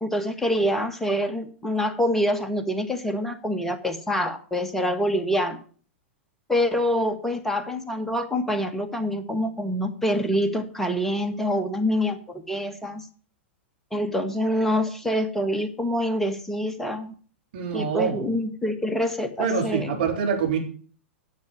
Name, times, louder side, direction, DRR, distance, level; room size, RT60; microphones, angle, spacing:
voice 1, 0.0-5.6 6.5-13.0 13.9-17.1 17.7-19.9, equal, 5° left, 5 dB, 1.7 m, -26 dB
voice 2, 17.5-18.3 19.4-20.6, right 6 dB, 55° right, 2 dB, 3.7 m, -25 dB
10.5 x 6.6 x 8.3 m, 0.43 s
figure-of-eight pair, 100°, 6 cm